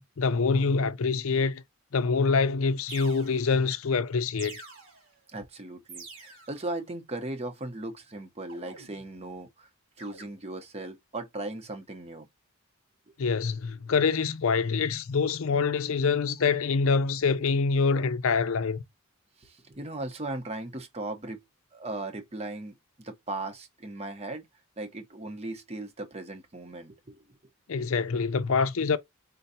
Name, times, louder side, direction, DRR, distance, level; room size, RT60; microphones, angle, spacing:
voice 1, 0.0-1.6 1.9-4.6 13.2-18.8 27.7-29.0, left 5 dB, 65° left, 0.5 m, -25 dB
sound 1, 2.2-2.3 2.9-3.7 4.4-5.2 5.9-6.7 8.5-9.3 10.0-10.2, right 4 dB, 60° right, 2.4 m, -46 dB
voice 2, 5.3-9.7 10.0-12.3 13.1-13.2 19.4-21.4 21.7-24.5 24.8-27.2, right 2 dB, 30° right, 0.8 m, -38 dB
4.5 x 3.9 x 2.7 m
head